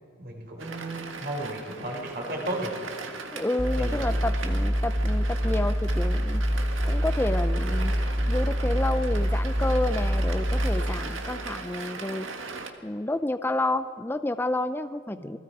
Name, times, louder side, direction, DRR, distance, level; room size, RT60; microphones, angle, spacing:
voice 1, 0.2-2.7 3.7-4.2 15.1-15.4, right 1 dB, 50° right, 0 dB, 4.8 m, -34 dB
sound 1, 0.6-12.7, right 4 dB, 75° right, 1.8 m, -39 dB
voice 2, 3.3-6.4 6.9-7.9 8.3-12.3 12.8-15.4, left 1 dB, 10° left, 10 dB, 0.4 m, -30 dB
sound 2, 3.6-10.9, equal, 15° right, 1.3 m, -26 dB
29.0 x 20.5 x 4.8 m, 2.3 s
head